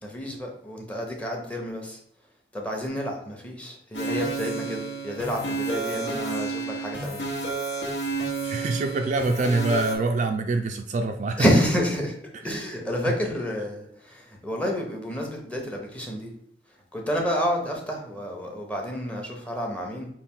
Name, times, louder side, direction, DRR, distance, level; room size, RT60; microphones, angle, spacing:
voice 1, 0.0-2.0 2.5-7.5 11.4-16.3 16.9-20.1, equal, 5° left, 0 dB, 0.8 m, -29 dB
sound 1, 3.9-10.0, right 3 dB, 85° left, 1.3 m, -31 dB
voice 2, 8.4-11.5 13.0-13.1, right 3 dB, 45° right, 5 dB, 0.3 m, -25 dB
5.4 x 2.5 x 3.6 m, 0.72 s
head